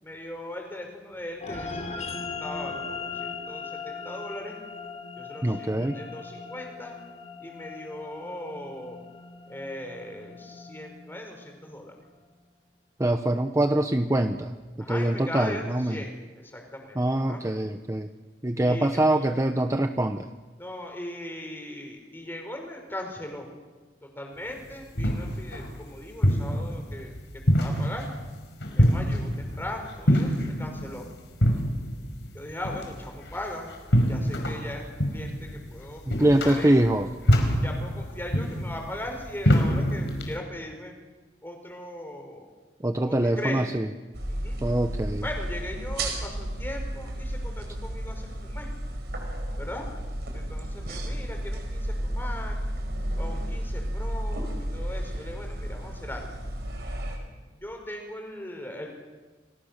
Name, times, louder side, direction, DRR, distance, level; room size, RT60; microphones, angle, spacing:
voice 1, 0.0-4.6 5.1-6.9 7.4-9.0 9.5-12.0 14.8-17.4 18.6-19.3 20.6-23.5 24.0-28.0 28.7-31.1 32.3-33.7 34.1-36.7 37.6-40.9 41.4-42.5 43.0-43.8 44.3-44.6 45.2-48.7 49.6-49.9 50.3-52.6 53.1-56.3 57.5-58.9, left 1 dB, 15° left, 3 dB, 4.9 m, -39 dB
sound 1, 1.4-12.0, left 4 dB, 40° left, 3.1 m, -39 dB
voice 2, 5.4-6.0 13.0-14.5 14.9-16.0 17.0-18.1 18.4-20.3 36.1-37.1 37.4-37.5 42.8-43.9 44.6-45.2, right 1 dB, 20° right, 7 dB, 0.8 m, -24 dB
sound 2, 24.5-40.4, equal, 80° left, 4.9 m, -26 dB
flicklighter smoke inhale flick, 44.1-57.2, right 1 dB, 65° right, 5.3 m, -32 dB
29.5 x 21.0 x 6.7 m, 1.3 s
head